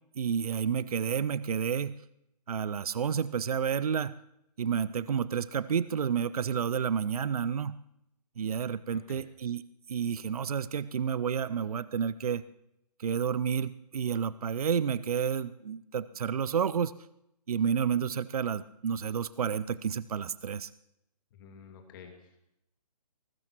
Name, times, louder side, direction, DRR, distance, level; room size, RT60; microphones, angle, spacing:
voice 1, 0.2-2.0 2.5-4.1 4.6-7.8 8.4-9.6 9.9-12.4 13.0-16.9 17.5-20.7, right 7 dB, 60° right, 18 dB, 0.5 m, -30 dB
voice 2, 8.9-9.2 21.3-22.4, left 6 dB, 30° left, 4 dB, 2.1 m, -51 dB
20.5 x 19.0 x 3.0 m, 0.79 s
figure-of-eight pair, 140°, 21 cm